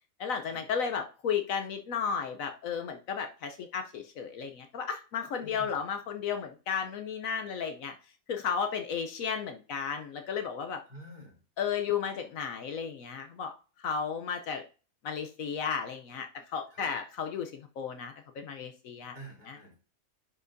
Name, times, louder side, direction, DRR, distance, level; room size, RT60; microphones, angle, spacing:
voice 1, 0.2-7.9 8.3-10.8 11.6-13.5 13.8-14.6 15.0-19.2 19.5-19.6, left 6 dB, 70° left, 5 dB, 1.1 m, -34 dB
voice 2, 5.4-5.7 10.9-11.3 16.7-16.9 19.1-19.7, right 1 dB, 30° right, -1 dB, 4.0 m, -48 dB
10.5 x 6.1 x 2.6 m, 0.36 s
omnidirectional pair, 1.5 m